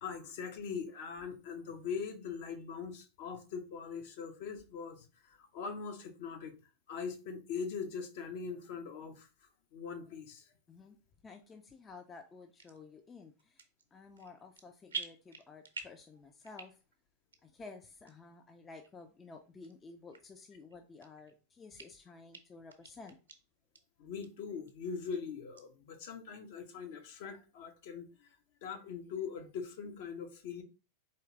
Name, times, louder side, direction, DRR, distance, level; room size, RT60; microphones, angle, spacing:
voice 1, 0.0-5.1 5.5-6.5 6.9-9.3 9.7-10.4 24.0-28.1 28.6-30.6, left 6 dB, 50° left, 0.7 m, -41 dB
voice 2, 11.2-13.6 13.9-16.8 17.4-23.2, left 4 dB, 20° left, 0.4 m, -52 dB
sound 1, 12.6-12.8 13.4-13.9 14.2-14.6 14.9-16.1 16.4-16.9 17.3-17.4 18.1-18.2 18.8-18.9 19.6-19.7 20.1-20.2 20.7-21.4 21.8-21.9 22.3-22.4 22.7-23.4 23.7-23.8 24.2-24.3 24.7-25.2 25.6-25.7, right 5 dB, 70° right, 0.6 m, -45 dB
4.4 x 3.2 x 3.6 m
figure-of-eight pair, 90°, 0 cm